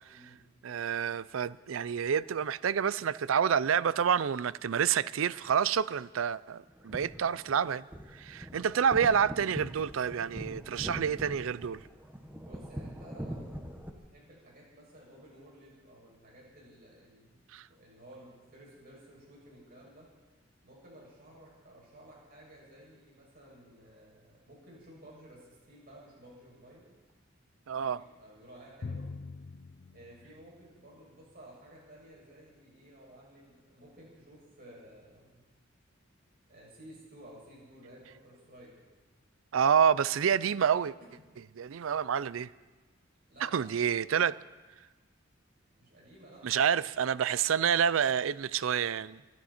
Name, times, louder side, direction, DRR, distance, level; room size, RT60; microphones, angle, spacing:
voice 1, 0.1-0.4 12.4-17.4 17.7-20.1 20.6-27.0 27.7-29.1 29.9-35.4 36.5-38.7 41.0-41.1 43.3-43.7 45.8-46.8, right 1 dB, 50° right, 6.8 m, -54 dB
voice 2, 0.6-7.9 8.1-11.8 17.5-17.6 27.7-28.0 39.5-40.9 41.6-42.5 43.4-44.3 46.4-49.2, right 7 dB, 80° right, 0.4 m, -28 dB
sound 1, 6.7-13.9, equal, 10° right, 1.2 m, -43 dB
Drum, 28.8-31.2, left 4 dB, 55° left, 0.5 m, -44 dB
24.5 x 12.0 x 4.3 m
head